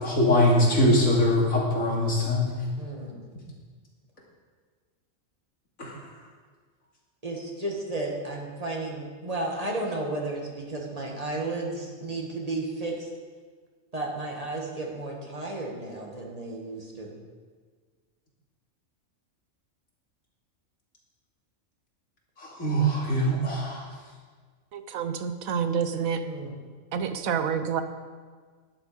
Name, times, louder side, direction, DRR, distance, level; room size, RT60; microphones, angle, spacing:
voice 1, 0.0-2.5 5.8-5.9 22.4-23.8, left 1 dB, 80° left, -3 dB, 2.9 m, -22 dB
voice 2, 2.8-3.2 7.2-13.1 13.9-17.1 26.2-26.5, right 2 dB, 30° right, -1 dB, 1.8 m, -33 dB
voice 3, 24.7-26.2 26.9-27.8, right 7 dB, 80° right, 9 dB, 1.2 m, -28 dB
11.5 x 9.9 x 5.1 m, 1.5 s
omnidirectional pair, 1.4 m